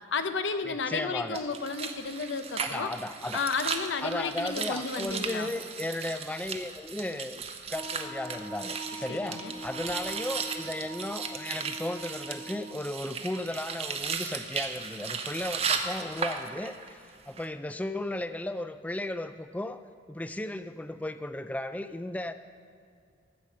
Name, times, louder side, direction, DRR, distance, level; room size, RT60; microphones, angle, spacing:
voice 1, 0.1-2.9 3.3-5.5 9.1-9.5, left 4 dB, 85° left, 9 dB, 0.7 m, -32 dB
voice 2, 0.6-1.4 2.6-3.4 4.0-19.8 20.1-22.3, left 1 dB, 10° left, 11 dB, 0.3 m, -35 dB
sound 1, 1.3-16.9 17.2-17.4, right 5 dB, 35° right, 0.6 m, -36 dB
Wind instrument woodwind instrument, 7.7-12.9, right 1 dB, 20° right, 1.0 m, -43 dB
14.5 x 5.0 x 6.6 m, 2.3 s
head